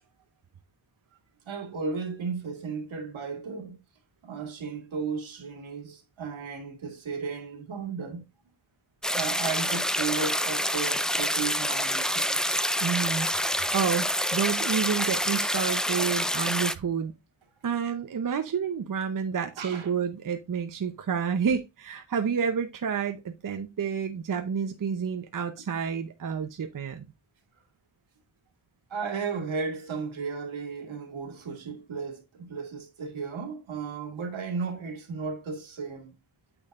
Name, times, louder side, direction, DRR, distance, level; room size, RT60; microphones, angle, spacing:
voice 1, 1.5-3.8 4.2-8.2 9.1-12.6 19.6-19.9 28.9-36.1, right 5 dB, 75° right, 2.4 m, -34 dB
sound 1, 9.0-16.7, equal, ahead, 0.3 m, -27 dB
voice 2, 12.8-17.1 17.6-27.1, right 7 dB, 45° right, 0.8 m, -29 dB
8.8 x 6.3 x 2.4 m
wide cardioid pair, 130°, 47 cm